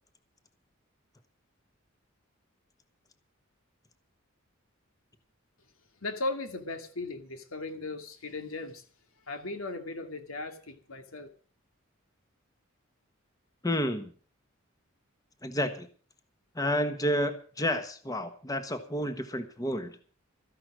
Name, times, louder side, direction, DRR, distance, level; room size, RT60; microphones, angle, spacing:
voice 1, 6.0-8.8 9.3-11.3, left 2 dB, 90° left, 2.4 m, -37 dB
voice 2, 13.6-14.1 15.4-15.9 16.5-20.0, equal, 20° left, 1.3 m, -30 dB
14.0 x 11.0 x 6.3 m
head